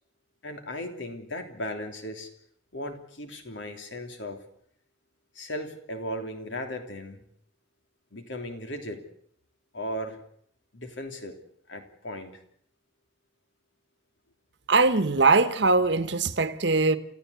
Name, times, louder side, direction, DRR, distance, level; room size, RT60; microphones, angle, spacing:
voice 1, 0.4-2.3 2.7-4.4 5.3-7.3 8.1-9.0 9.7-10.2 10.7-11.4 11.7-12.4, equal, 80° left, 3.1 m, -36 dB
voice 2, 14.7-17.0, right 3 dB, 65° right, 1.1 m, -21 dB
29.0 x 14.5 x 8.2 m
head